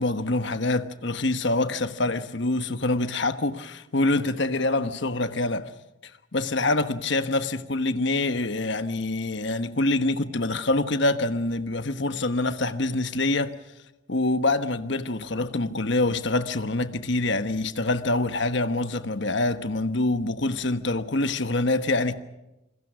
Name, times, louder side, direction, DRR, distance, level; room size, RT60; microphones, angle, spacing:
voice 1, 0.0-5.7 6.3-13.6 14.1-22.1, left 2 dB, 60° left, 1.2 m, -25 dB
27.0 x 22.0 x 6.2 m
head